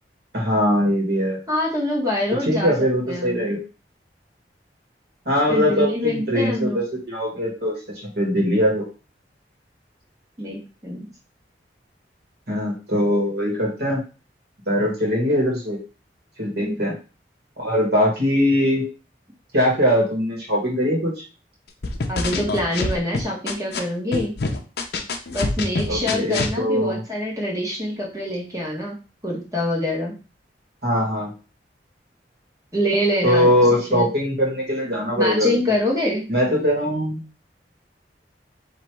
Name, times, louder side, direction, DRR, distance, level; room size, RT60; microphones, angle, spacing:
voice 1, 0.3-1.4 2.5-3.6 5.3-7.8 8.2-8.9 12.5-14.0 14.7-15.8 16.4-16.9 17.6-18.8 19.5-21.1 25.9-27.0 30.8-31.3 33.2-35.6 36.3-37.2, equal, 65° right, -2 dB, 1.8 m, -21 dB
voice 2, 1.5-2.7 3.1-3.5 5.5-6.8 10.4-11.1 16.6-16.9 22.1-24.3 25.3-28.9 29.2-30.1 32.7-34.1 35.1-36.2, left 1 dB, 20° right, -2 dB, 1.4 m, -25 dB
sound 1, 21.8-23.8 24.1-26.5, left 3 dB, 60° left, 0.6 m, -25 dB
3.2 x 3.0 x 4.6 m, 0.34 s
head